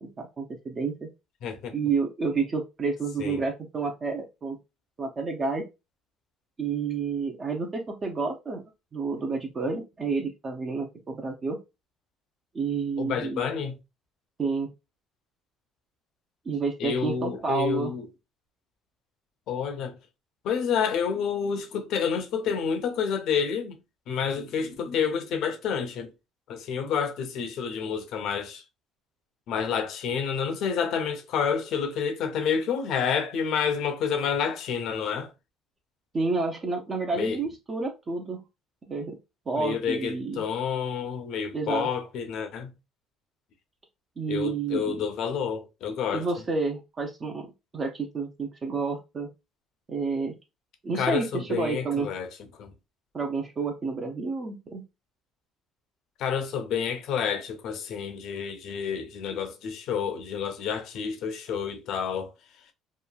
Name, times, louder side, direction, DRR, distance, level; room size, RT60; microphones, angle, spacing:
voice 1, 0.0-1.1 1.7-4.6 5.0-5.7 6.6-8.6 8.9-11.6 12.5-13.5 14.4-14.7 16.5-17.9 36.1-38.4 38.9-39.2 39.5-40.4 41.5-41.9 44.2-45.0 46.1-47.5 47.7-49.3 49.9-50.3 50.8-52.1 53.1-54.8, right 4 dB, 35° right, 0.5 m, -30 dB
voice 2, 1.4-1.8 3.2-3.4 13.0-13.8 16.8-18.1 19.5-20.0 20.4-23.8 24.1-26.1 26.5-28.6 29.5-35.3 37.1-37.4 39.6-42.7 44.3-46.3 50.9-52.3 52.6-52.7 56.2-62.3, left 7 dB, 70° left, 0.6 m, -29 dB
3.0 x 2.3 x 2.3 m
supercardioid pair, 90°, 0 cm